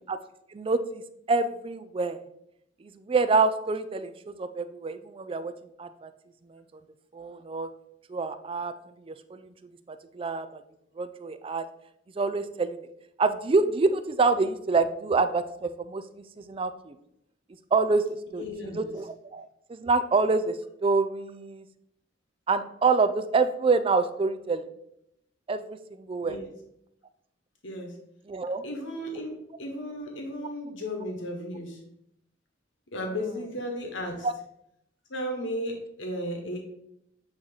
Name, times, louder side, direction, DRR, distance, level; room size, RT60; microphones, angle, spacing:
voice 1, 0.5-1.0 1.3-2.2 2.8-5.5 5.8-6.1 6.5-6.6 7.1-7.7 8.1-8.7 9.1-9.5 9.9-10.6 11.0-11.7 12.2-12.8 13.2-16.9 17.7-18.0 18.3-21.6 22.5-24.7 25.5-26.4 28.3-28.6 34.2-34.3, right 4 dB, 30° right, 11 dB, 0.4 m, -27 dB
voice 2, 18.3-18.9 26.2-26.4 27.6-27.9 28.6-31.8 32.9-34.3 35.1-36.6, equal, 80° left, 2 dB, 1.2 m, -34 dB
8.5 x 3.0 x 4.0 m, 0.78 s
head